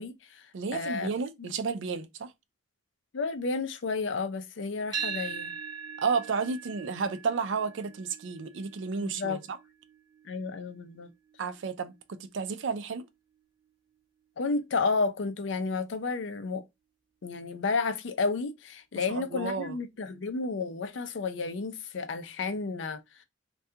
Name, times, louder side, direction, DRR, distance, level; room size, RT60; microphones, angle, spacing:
voice 1, 0.0-0.5 0.7-1.1 1.4-1.5 3.1-5.5 9.0-9.4 10.2-11.1 14.4-16.6 17.2-23.2, left 4 dB, 70° left, 0.5 m, -31 dB
voice 2, 0.5-2.3 6.0-9.6 11.4-13.1 18.9-19.8, right 5 dB, 70° right, 0.4 m, -32 dB
sound 1, 4.9-13.1, right 6 dB, 25° right, 0.5 m, -42 dB
3.3 x 2.3 x 2.7 m
head